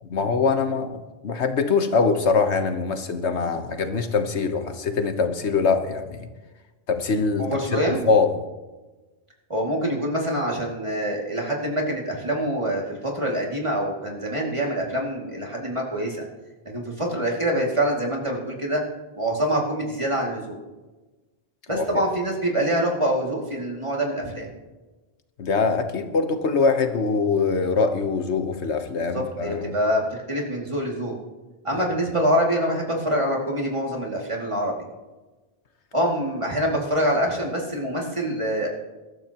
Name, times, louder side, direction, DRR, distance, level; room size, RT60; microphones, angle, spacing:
voice 1, 0.0-6.3 6.9-7.5 7.7-8.4 21.7-21.8 25.4-29.7, left 4 dB, 85° left, 7 dB, 1.4 m, -23 dB
voice 2, 7.4-8.0 9.5-16.2 16.7-18.8 19.2-20.6 21.7-24.5 29.0-30.0 30.3-31.2 31.6-34.7 35.9-38.7, equal, 30° right, -1 dB, 2.5 m, -25 dB
22.0 x 12.5 x 3.0 m, 1.2 s
omnidirectional pair, 1.1 m